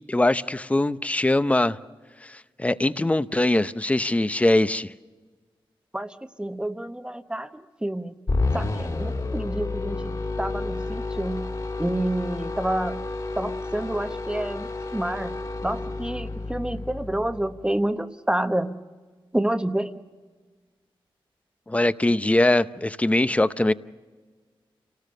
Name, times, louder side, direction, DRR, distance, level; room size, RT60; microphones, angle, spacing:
voice 1, 0.1-1.8 2.2-4.9 21.7-23.7, left 1 dB, 15° left, 13 dB, 0.6 m, -22 dB
voice 2, 5.9-8.2 8.5-13.0 13.4-18.8 19.3-19.9, right 1 dB, 10° right, 9 dB, 0.9 m, -29 dB
sound 1, 8.3-17.6, left 3 dB, 40° left, 2.5 m, -30 dB
29.5 x 18.5 x 6.6 m, 1.4 s
wide cardioid pair, 140°, 9 cm